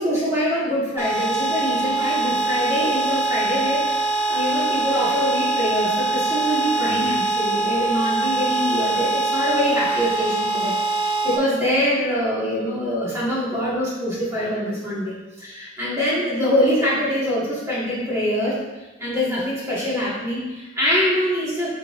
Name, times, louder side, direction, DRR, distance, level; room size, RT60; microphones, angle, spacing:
voice 1, 0.0-18.6 19.0-21.7, equal, 15° right, -8 dB, 1.8 m, -24 dB
sound 1, 1.0-11.4, right 3 dB, 10° left, 0.9 m, -23 dB
9.2 x 4.6 x 2.6 m, 1.1 s
head